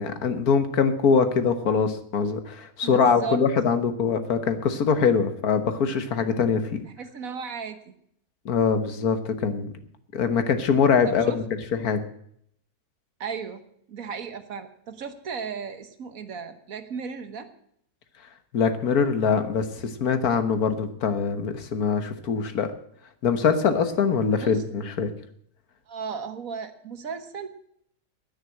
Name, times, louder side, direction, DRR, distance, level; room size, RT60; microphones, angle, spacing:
voice 1, 0.0-6.8 8.5-9.7 10.1-11.4 11.8-12.0 18.5-22.7 23.2-25.1, left 6 dB, 70° left, 9 dB, 1.7 m, -23 dB
voice 2, 2.8-3.4 7.0-7.9 11.1-11.4 13.2-13.6 13.9-17.5 24.4-24.6 25.9-27.5, right 5 dB, 60° right, 9 dB, 1.6 m, -35 dB
10.5 x 9.9 x 8.6 m, 0.69 s
omnidirectional pair, 1.7 m